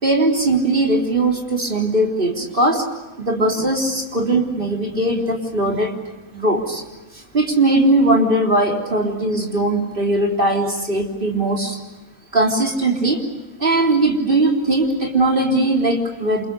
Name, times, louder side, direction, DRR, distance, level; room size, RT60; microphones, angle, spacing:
voice 1, 0.0-2.9 3.2-5.9 6.3-6.8 7.1-11.8 12.3-13.2 13.6-16.5, right 2 dB, 40° right, 0 dB, 4.0 m, -19 dB
28.5 x 28.0 x 6.7 m, 1.1 s
omnidirectional pair, 1.4 m